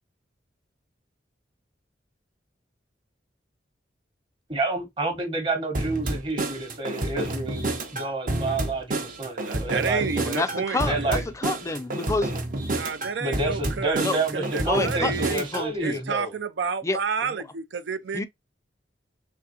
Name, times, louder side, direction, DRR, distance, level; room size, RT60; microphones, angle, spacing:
voice 1, 4.5-10.1 10.8-11.2 13.2-16.3, right 2 dB, 30° right, 1.0 m, -29 dB
sound 1, 5.7-15.7, right 2 dB, 50° right, 0.7 m, -29 dB
voice 2, 9.4-11.2 12.7-15.4 15.8-18.3, right 5 dB, 75° right, 0.5 m, -30 dB
voice 3, 10.1-12.3 14.0-16.0 16.8-17.0 18.1-18.3, left 3 dB, 15° left, 0.4 m, -29 dB
3.7 x 3.3 x 2.8 m
head